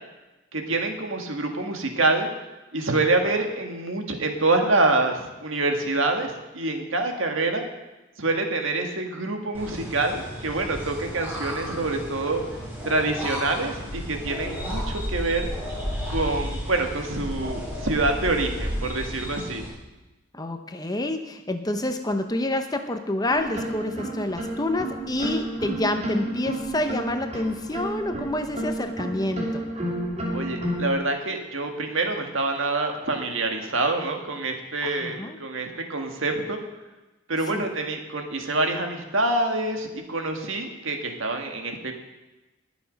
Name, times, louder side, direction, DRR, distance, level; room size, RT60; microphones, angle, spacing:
voice 1, 0.5-2.3 2.7-7.6 8.2-12.4 12.8-15.5 16.1-19.6 30.3-36.6 37.3-41.9, right 2 dB, 70° right, 4 dB, 1.8 m, -26 dB
sound 1, 9.5-19.7, equal, 10° right, 2.9 m, -33 dB
voice 2, 20.3-29.6 34.8-35.4 37.5-37.7, left 1 dB, 20° left, 7 dB, 0.8 m, -28 dB
sound 2, 23.3-30.9, right 1 dB, 30° right, 2.9 m, -31 dB
20.5 x 7.2 x 5.3 m, 1.1 s
head